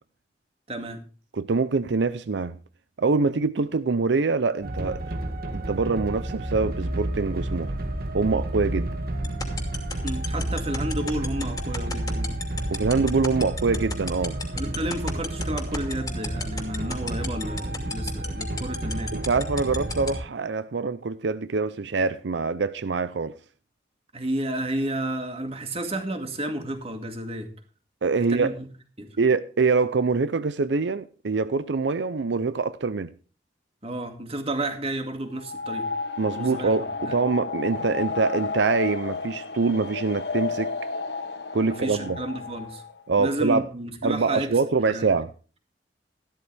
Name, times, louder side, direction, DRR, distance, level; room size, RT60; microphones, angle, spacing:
voice 1, 0.7-1.0 10.0-12.4 14.6-19.1 24.1-27.5 28.3-28.7 29.0-29.2 33.8-35.9 36.3-36.7 37.1-37.2 41.6-42.8 43.2-44.5 44.9-45.1, right 1 dB, 35° right, 2.1 m, -31 dB
voice 2, 1.3-2.5 3.0-5.1 5.5-7.7 8.1-8.9 12.7-14.4 19.1-23.3 28.0-28.5 29.2-33.1 36.2-40.7 41.5-42.2 43.1-43.7 44.0-45.3, right 4 dB, 80° right, 0.6 m, -24 dB
sound 1, 4.6-20.2, right 1 dB, 55° right, 1.8 m, -31 dB
sound 2, 9.2-20.1, left 4 dB, 20° left, 2.5 m, -31 dB
sound 3, 35.3-43.0, left 4 dB, 70° left, 1.1 m, -32 dB
13.5 x 12.5 x 3.4 m
head